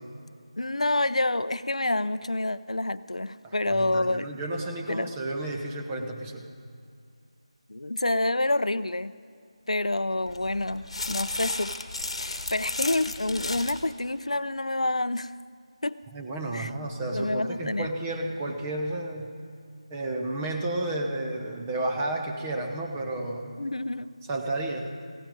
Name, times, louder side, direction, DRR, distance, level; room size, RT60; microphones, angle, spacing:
voice 1, 0.6-4.3 4.9-5.1 7.7-9.1 9.7-11.7 12.0-15.3 15.8-16.0 16.5-16.7 17.1-17.9 23.6-24.1, left 2 dB, 85° left, 16 dB, 0.4 m, -28 dB
voice 2, 3.4-6.4 16.1-19.4 19.9-23.5 24.3-24.9, right 2 dB, 15° right, 1 dB, 0.8 m, -32 dB
sound 1, 10.3-13.8, left 2 dB, 60° left, 1.1 m, -34 dB
16.0 x 9.9 x 5.2 m, 2.3 s
figure-of-eight pair, 165°, 3 cm